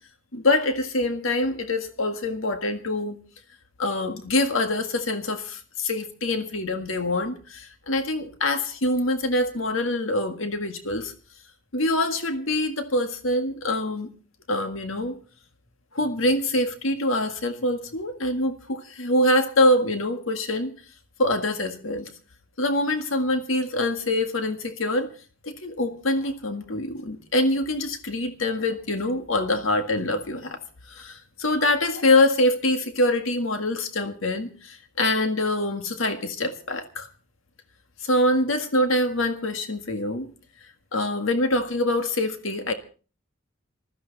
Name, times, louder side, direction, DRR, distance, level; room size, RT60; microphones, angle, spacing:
voice 1, 0.3-3.2 3.8-11.1 11.7-14.1 14.5-15.2 15.9-20.7 21.2-22.1 22.6-25.1 25.4-30.6 30.9-37.1 38.0-40.3 40.9-42.7, left 1 dB, 90° left, 7 dB, 1.8 m, -25 dB
20.0 x 14.0 x 4.0 m, 0.38 s
head